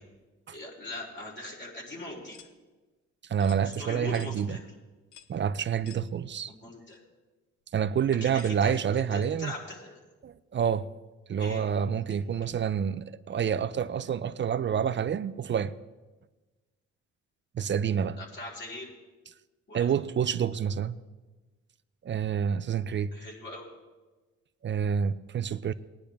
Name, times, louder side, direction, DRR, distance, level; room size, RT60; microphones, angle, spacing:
voice 1, 0.5-2.5 3.6-4.6 6.5-7.0 8.2-10.0 11.4-11.6 18.2-18.9 19.7-19.9 23.1-23.7, left 2 dB, 35° left, 4.1 m, -41 dB
sound 1, 2.3-2.5 3.4-3.6 4.1-4.3 5.1-5.4 5.8-6.1 6.9-7.0 8.4-8.6, left 10 dB, 75° left, 0.8 m, -51 dB
voice 2, 3.3-4.6 5.3-6.5 7.7-9.5 10.2-10.9 11.3-15.7 17.5-18.2 19.7-21.0 22.0-23.1 24.6-25.7, right 7 dB, 40° right, 0.5 m, -28 dB
19.0 x 10.0 x 3.5 m
cardioid pair, 90°, 30 cm